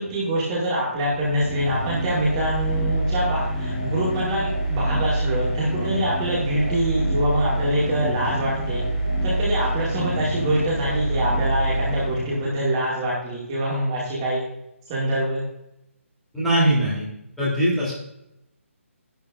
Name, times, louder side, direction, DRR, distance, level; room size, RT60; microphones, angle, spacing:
voice 1, 0.0-8.8 9.2-14.4 14.9-15.4, right 1 dB, 20° right, -6 dB, 2.4 m, -25 dB
sound 1, 1.0-12.8, right 1 dB, 30° left, 1.9 m, -26 dB
voice 2, 16.3-17.1 17.4-17.9, right 1 dB, ahead, -10 dB, 3.4 m, -21 dB
11.5 x 11.0 x 2.7 m, 0.85 s
figure-of-eight pair, 145°, 8 cm